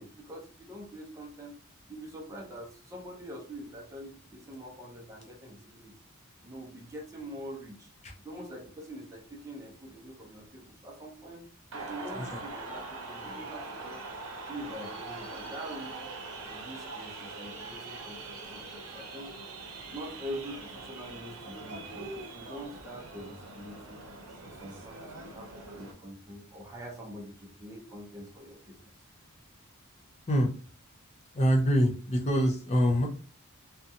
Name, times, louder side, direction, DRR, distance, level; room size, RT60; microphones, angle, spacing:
voice 1, 0.0-1.5 1.9-5.9 6.4-7.9 8.2-11.5 11.7-14.0 14.5-16.1 16.4-19.3 19.9-24.0 24.4-28.9, equal, 15° right, -1 dB, 0.6 m, -44 dB
sound 1, 11.7-25.9, right 3 dB, 90° right, 0.6 m, -42 dB
voice 2, 31.3-33.1, equal, 30° left, 0 dB, 0.5 m, -25 dB
2.5 x 2.3 x 2.6 m, 0.40 s
head